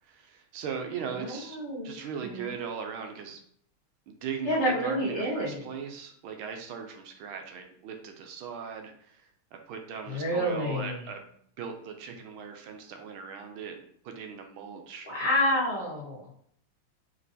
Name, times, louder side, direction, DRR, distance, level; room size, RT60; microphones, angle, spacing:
voice 1, 0.0-1.6 1.8-3.4 4.1-13.8 14.0-15.1, right 6 dB, 75° right, 5 dB, 1.4 m, -39 dB
voice 2, 1.2-1.9 2.2-2.5 4.4-5.7 10.1-11.0 15.0-16.3, equal, 15° left, -10 dB, 1.3 m, -29 dB
5.2 x 2.9 x 2.7 m, 0.64 s
omnidirectional pair, 2.4 m